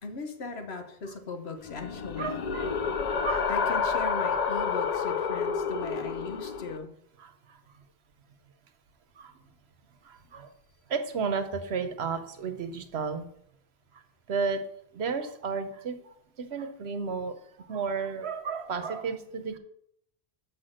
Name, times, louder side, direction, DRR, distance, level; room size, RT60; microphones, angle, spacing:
voice 1, 0.0-2.4 3.5-6.9, left 3 dB, 80° left, 6 dB, 1.4 m, -38 dB
sound 1, 1.6-6.8, left 6 dB, 45° left, 0.6 m, -29 dB
voice 2, 2.2-2.8 3.2-3.5 7.2-7.6 9.2-9.3 10.0-10.5 10.9-13.3 14.3-14.6 14.9-19.6, right 5 dB, 85° right, 8 dB, 1.2 m, -33 dB
6.9 x 6.1 x 6.4 m, 0.72 s
omnidirectional pair, 1.1 m